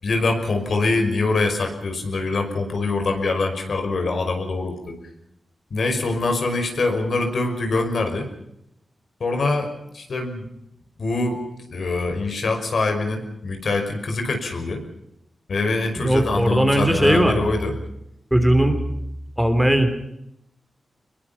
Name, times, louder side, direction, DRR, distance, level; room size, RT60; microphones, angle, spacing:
voice 1, 0.0-4.9 5.7-8.3 9.2-9.7 9.9-10.4 11.0-11.4 11.7-14.8 15.5-17.7, left 3 dB, 65° left, 5 dB, 5.6 m, -24 dB
voice 2, 16.0-17.4 18.3-18.8 19.4-19.9, right 1 dB, 5° right, 7 dB, 3.2 m, -18 dB
26.0 x 22.0 x 5.8 m, 0.81 s
wide cardioid pair, 125°, 0 cm